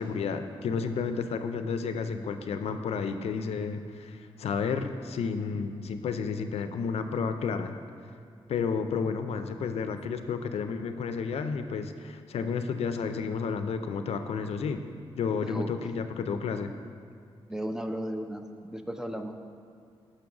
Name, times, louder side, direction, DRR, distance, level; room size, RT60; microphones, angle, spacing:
voice 1, 0.0-7.8 8.5-14.8 15.2-16.7, left 5 dB, 85° left, 8 dB, 0.4 m, -31 dB
voice 2, 15.3-15.7 17.5-19.3, equal, 5° right, 6 dB, 0.3 m, -35 dB
6.5 x 3.8 x 5.9 m, 2.3 s
wide cardioid pair, 125°, 10 cm